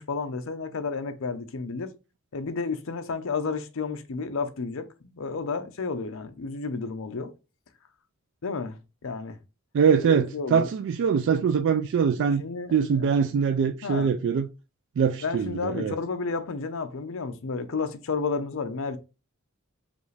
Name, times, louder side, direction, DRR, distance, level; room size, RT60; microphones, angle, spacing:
voice 1, 0.0-1.9 2.3-7.3 8.4-9.4 10.0-10.7 12.4-13.2 13.8-14.1 15.2-19.0, left 4 dB, 70° left, 0.6 m, -32 dB
voice 2, 9.7-12.4 12.7-14.5 15.0-15.9, right 6 dB, 60° right, 0.3 m, -23 dB
5.1 x 2.4 x 3.2 m
head